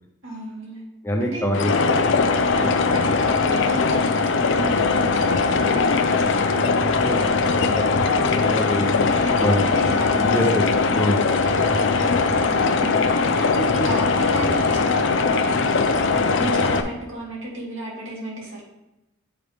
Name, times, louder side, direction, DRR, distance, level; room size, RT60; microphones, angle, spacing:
voice 1, 0.2-0.8 1.2-1.5 2.5-6.9 8.5-10.4 11.9-18.6, right 1 dB, 65° right, -4 dB, 2.2 m, -33 dB
voice 2, 1.0-2.1 2.6-2.8 7.0-7.3 7.7-8.9 9.4-9.6 10.1-11.8 13.7-13.8 16.3-16.5, left 1 dB, 10° left, 0 dB, 0.5 m, -25 dB
sound 1, 1.5-16.8, left 4 dB, 60° left, 0.5 m, -20 dB
8.0 x 4.9 x 3.4 m, 0.91 s
head